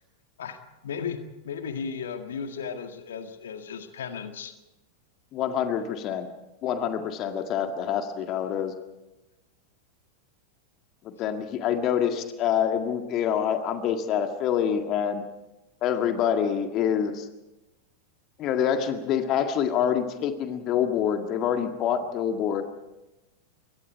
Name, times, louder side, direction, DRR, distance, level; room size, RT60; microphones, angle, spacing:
voice 1, 0.4-1.2 1.4-4.6, left 6 dB, 65° left, 7 dB, 1.9 m, -35 dB
voice 2, 5.3-6.3 6.6-8.7 11.0-15.2 15.8-17.3 18.4-22.6, left 8 dB, 35° left, 6 dB, 1.9 m, -26 dB
27.5 x 23.5 x 4.7 m, 1.0 s
figure-of-eight pair, 90°, 0 cm